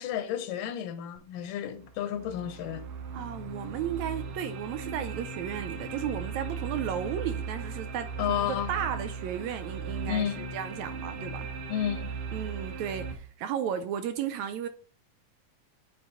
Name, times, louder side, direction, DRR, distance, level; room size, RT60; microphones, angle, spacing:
voice 1, 0.0-2.9 8.2-8.7 10.1-10.6 11.7-12.2, left 10 dB, 85° left, 2.3 m, -32 dB
sound 1, 1.2-1.3 1.8-13.1, right 4 dB, 65° right, 2.0 m, -37 dB
voice 2, 3.1-11.5 12.3-14.7, right 9 dB, 85° right, 1.6 m, -34 dB
9.3 x 4.1 x 3.7 m
omnidirectional pair, 3.8 m